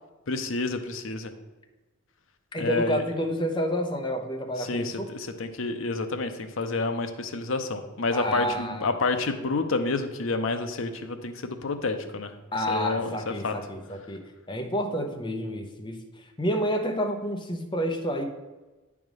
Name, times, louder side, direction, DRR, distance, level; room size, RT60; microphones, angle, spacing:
voice 1, 0.3-1.3 2.6-3.0 4.6-12.3 12.7-13.2 13.4-13.5, left 3 dB, 65° left, 7 dB, 0.7 m, -29 dB
voice 2, 2.5-5.1 8.1-8.9 12.5-14.2 14.5-16.0 16.4-18.2, equal, 20° left, 4 dB, 0.8 m, -29 dB
9.2 x 3.5 x 6.2 m, 1.2 s
head